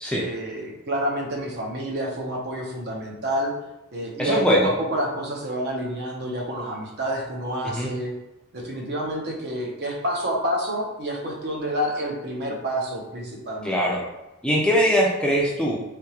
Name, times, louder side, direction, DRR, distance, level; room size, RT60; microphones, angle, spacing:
voice 1, 0.1-3.5 3.9-8.1 8.5-13.8, equal, 50° right, 0 dB, 0.8 m, -28 dB
voice 2, 4.2-4.7 7.6-7.9 13.6-14.1 14.4-15.8, equal, 5° left, -4 dB, 0.4 m, -21 dB
3.4 x 2.8 x 2.9 m, 0.97 s
head